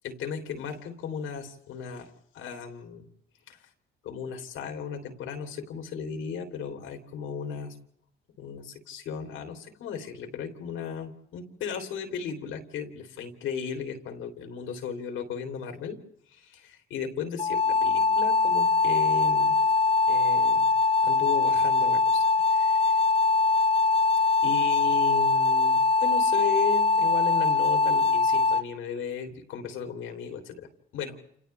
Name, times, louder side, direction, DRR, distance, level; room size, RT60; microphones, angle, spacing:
voice 1, 0.0-3.1 3.5-3.6 4.0-7.8 8.4-16.0 16.3-19.7 20.1-20.7 21.0-22.9 24.4-31.2, left 7 dB, 90° left, 4 dB, 3.3 m, -36 dB
sound 1, 17.4-28.6, left 4 dB, 30° left, 1.0 m, -22 dB
29.5 x 28.5 x 3.4 m, 0.70 s
cardioid pair, 90°, 20 cm